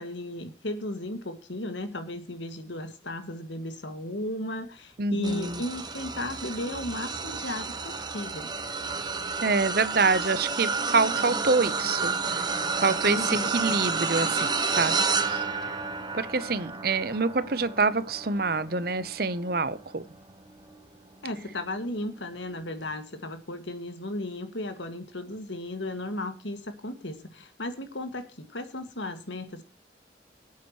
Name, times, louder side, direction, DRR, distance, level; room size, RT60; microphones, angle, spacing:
voice 1, 0.0-8.5 13.1-13.5 21.2-29.6, left 1 dB, 80° left, 2.0 m, -35 dB
voice 2, 5.0-5.6 9.4-12.5 12.8-15.0 15.3-15.4 16.1-20.0, right 4 dB, 55° right, 0.8 m, -26 dB
sound 1, 5.2-20.7 21.3-21.5 22.8-22.9, right 4 dB, 20° right, 1.0 m, -31 dB
24.0 x 8.4 x 3.1 m
head